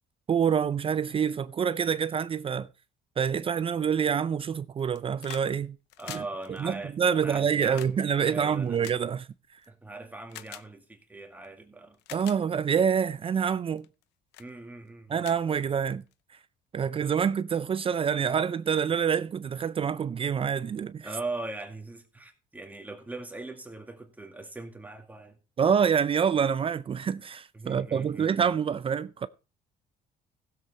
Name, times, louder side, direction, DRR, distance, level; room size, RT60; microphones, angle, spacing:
voice 1, 0.3-2.7 3.2-5.8 6.1-9.6 12.1-13.9 15.1-16.0 16.7-21.1 25.6-29.3, right 7 dB, 35° right, 0.4 m, -27 dB
sound 1, 4.8-5.5 5.8-9.7 10.3-10.7 11.4-11.5 11.9-12.4 13.0-13.2 13.8-14.0 14.3-14.5 14.9-15.0 15.2-16.1 17.3-17.4, left 15 dB, 85° left, 0.6 m, -46 dB
voice 2, 6.0-8.8 9.7-12.0 14.4-15.1 21.0-25.4 27.5-28.5, right 2 dB, 10° right, 2.2 m, -40 dB
15.5 x 7.6 x 4.2 m
cardioid pair, 110°, 17 cm